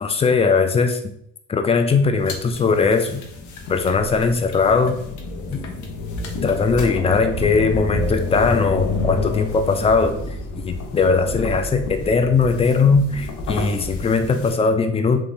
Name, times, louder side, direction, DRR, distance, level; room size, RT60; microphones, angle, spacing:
voice 1, 0.0-1.1 1.5-3.2 3.7-5.0 5.5-5.7 6.4-10.2 10.6-15.2, left 4 dB, 20° left, 7 dB, 0.3 m, -19 dB
sound 1, 2.2-14.5, left 2 dB, 75° left, 0.6 m, -29 dB
3.2 x 2.2 x 2.6 m, 0.70 s
cardioid pair, 90°, 30 cm